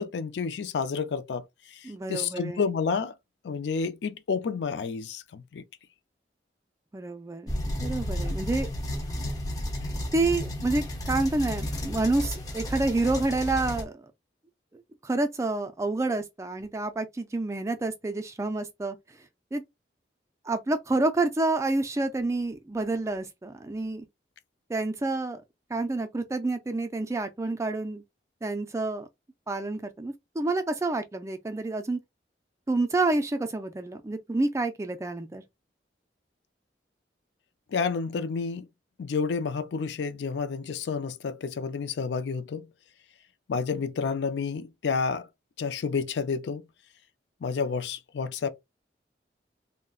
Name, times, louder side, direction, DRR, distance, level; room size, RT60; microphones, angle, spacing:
voice 1, 0.0-3.1 3.4-5.6 37.7-38.7 39.0-42.7 43.5-45.3 45.6-46.6 47.4-48.5, left 5 dB, 80° left, 0.4 m, -30 dB
voice 2, 1.8-2.7 6.9-7.5 7.8-8.7 10.1-14.0 14.7-19.0 19.5-19.6 20.4-24.1 24.7-25.4 25.7-28.0 28.4-29.1 29.5-32.0 32.7-35.4, right 2 dB, 15° right, 0.3 m, -28 dB
sound 1, 7.5-13.8, left 1 dB, 20° left, 0.6 m, -32 dB
3.6 x 2.1 x 2.3 m
head